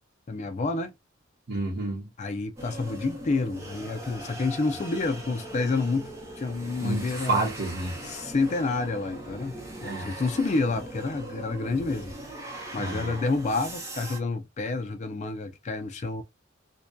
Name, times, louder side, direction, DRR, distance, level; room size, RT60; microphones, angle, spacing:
voice 1, 0.3-0.9 2.2-7.5 8.0-9.5 9.8-12.1 12.7-16.2, left 3 dB, 35° left, 0.4 m, -29 dB
voice 2, 1.5-2.1 6.8-7.9 9.8-10.1 12.8-13.1, right 3 dB, 55° right, 0.9 m, -30 dB
sound 1, 2.6-14.2, right 1 dB, 15° right, 0.8 m, -40 dB
2.6 x 2.1 x 2.2 m
head